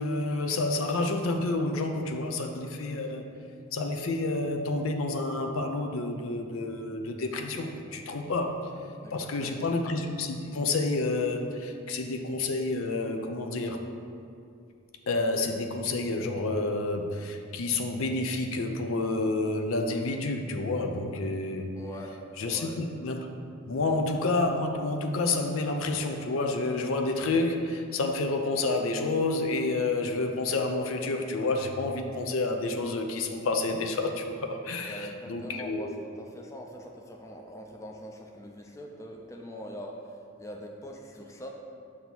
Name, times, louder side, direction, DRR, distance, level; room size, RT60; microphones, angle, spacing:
voice 1, 0.0-3.2 3.7-8.7 9.1-13.8 15.1-21.7 22.4-23.3 23.7-36.0, left 2 dB, 85° left, 5 dB, 0.5 m, -29 dB
voice 2, 9.0-9.7 21.7-22.2 22.4-22.8 34.8-41.5, equal, 15° left, 1 dB, 0.4 m, -43 dB
7.3 x 2.8 x 5.9 m, 2.5 s
head